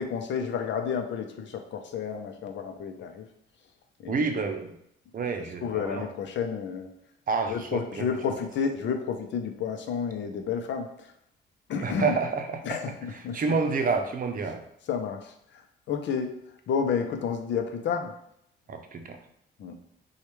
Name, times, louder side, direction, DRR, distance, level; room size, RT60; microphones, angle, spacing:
voice 1, 0.0-3.3 4.0-4.3 5.6-6.9 7.5-11.1 11.7-12.2 12.6-13.4 14.9-15.6 15.9-16.3 16.7-18.1 19.6-19.8, left 6 dB, 65° left, 5 dB, 0.7 m, -31 dB
voice 2, 4.1-4.8 5.1-6.1 7.3-8.1 11.8-12.8 13.1-14.6 18.7-19.2, right 4 dB, 45° right, 5 dB, 0.7 m, -29 dB
6.3 x 2.4 x 3.1 m, 0.74 s
cardioid pair, 90°, 20 cm